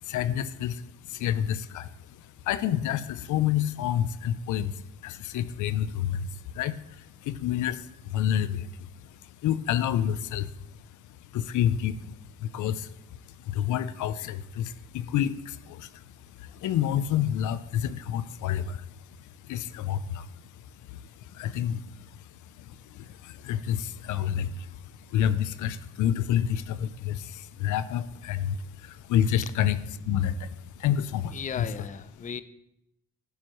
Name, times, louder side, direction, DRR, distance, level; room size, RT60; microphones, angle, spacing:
voice 1, 0.0-10.8 11.3-12.9 13.3-16.0 16.3-18.9 19.2-20.3 20.9-31.6, left 10 dB, 80° left, 14 dB, 0.6 m, -29 dB
voice 2, 31.3-32.4, left 7 dB, 25° left, 13 dB, 0.5 m, -36 dB
12.0 x 9.6 x 3.1 m, 0.81 s
cardioid pair, 90°, 30 cm